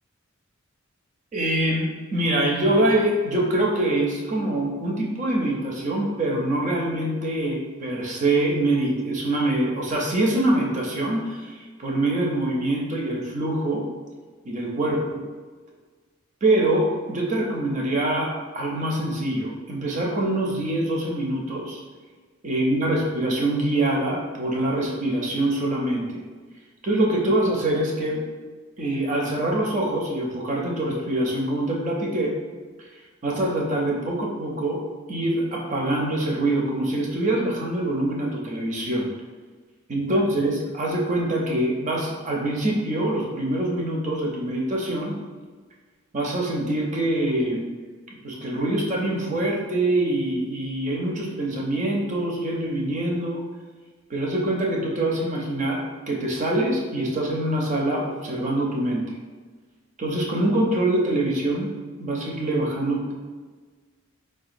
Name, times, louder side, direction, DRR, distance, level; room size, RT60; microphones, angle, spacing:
voice 1, 1.3-13.9 14.4-15.2 16.4-21.8 22.4-26.2 26.8-28.2 28.8-32.4 33.2-39.1 39.9-45.1 46.1-47.7 48.2-53.4 54.1-59.0 60.0-61.7 62.0-63.1, right 1 dB, 35° right, -1 dB, 0.5 m, -24 dB
3.7 x 2.3 x 2.5 m, 1.4 s
head